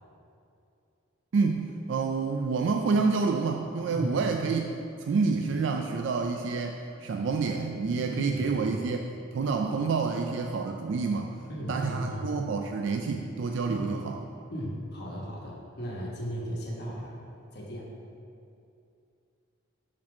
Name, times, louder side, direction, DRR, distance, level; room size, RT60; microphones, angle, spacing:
voice 1, 1.3-4.7 5.0-9.0 9.3-11.3 11.7-14.1, right 4 dB, 60° right, 3 dB, 0.3 m, -28 dB
voice 2, 8.1-8.8 11.5-12.3 13.7-13.9 14.5-17.2 17.5-17.9, equal, 50° left, -3 dB, 1.3 m, -36 dB
6.1 x 4.3 x 6.0 m, 2.6 s
head